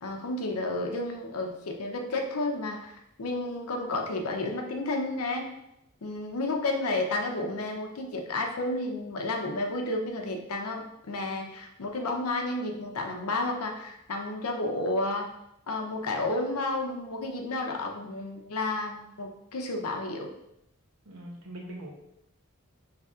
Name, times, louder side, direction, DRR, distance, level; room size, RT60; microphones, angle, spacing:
voice 1, 0.0-5.5 6.0-15.3 15.7-20.3, left 2 dB, 80° left, 2 dB, 0.7 m, -31 dB
voice 2, 21.1-21.9, right 1 dB, 80° right, -1 dB, 0.9 m, -41 dB
5.6 x 3.4 x 2.4 m, 0.83 s
head